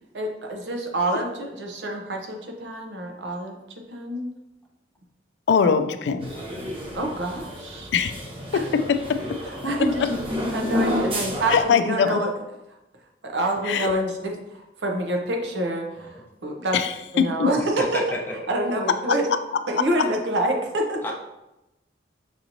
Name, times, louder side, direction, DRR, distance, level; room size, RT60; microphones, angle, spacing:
voice 1, 0.1-3.6 3.9-4.3 5.6-5.8 6.9-7.9 8.5-8.6 9.5-10.1 10.5-12.3 13.2-16.8 17.1-18.0 18.5-19.3 19.7-21.0, right 1 dB, 75° right, 2 dB, 0.8 m, -27 dB
voice 2, 5.5-6.3 7.9-8.1 8.5-9.4 10.0-10.1 11.5-12.2 13.7-13.9 16.7-17.5 20.0-20.1, left 6 dB, 70° left, 9 dB, 0.3 m, -22 dB
sound 1, 6.2-11.6, left 1 dB, 30° right, 0.7 m, -30 dB
voice 3, 17.4-18.4 21.0-21.1, left 1 dB, 10° left, -2 dB, 0.7 m, -31 dB
5.9 x 2.9 x 2.6 m, 0.93 s
head